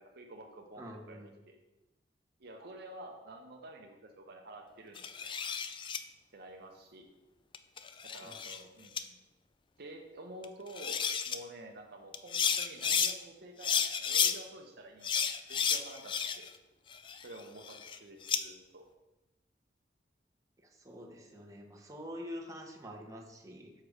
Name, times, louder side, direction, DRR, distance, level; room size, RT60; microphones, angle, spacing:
voice 1, 0.0-1.2 1.5-1.6 2.4-5.3 6.3-7.1 8.1-9.2 9.8-11.0 11.3-15.2 15.5-16.5 17.2-18.8, right 1 dB, 65° right, 2 dB, 0.7 m, -49 dB
voice 2, 0.8-1.3 8.2-8.3 20.6-23.7, equal, 20° right, 0 dB, 0.9 m, -46 dB
sound 1, 5.0-6.0 7.5-8.6 9.0-9.1 10.4-10.5 10.7-11.4 12.1-13.1 13.6-14.3 15.0-16.6 16.9-18.4, left 7 dB, 30° left, 0.3 m, -32 dB
6.5 x 4.7 x 4.9 m, 1.0 s
head